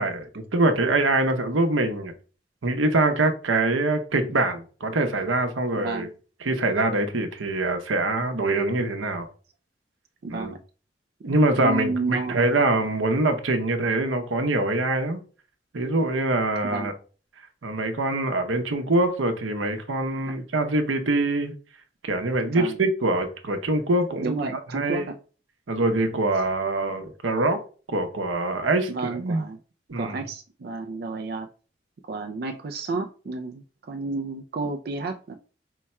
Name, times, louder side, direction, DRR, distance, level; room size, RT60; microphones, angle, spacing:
voice 1, 0.0-2.1 2.6-6.1 6.4-9.3 10.3-10.5 11.2-15.2 15.7-16.9 17.6-21.5 22.0-25.1 25.7-27.6 27.9-29.5 29.9-30.2, right 2 dB, 90° right, 0.7 m, -24 dB
voice 2, 5.8-6.1 10.2-10.6 11.6-12.4 16.6-16.9 20.3-20.4 22.6-22.8 24.1-25.2 28.9-29.6 30.0-31.5 32.1-35.3, right 3 dB, 55° right, 0.4 m, -31 dB
4.7 x 2.2 x 4.2 m
head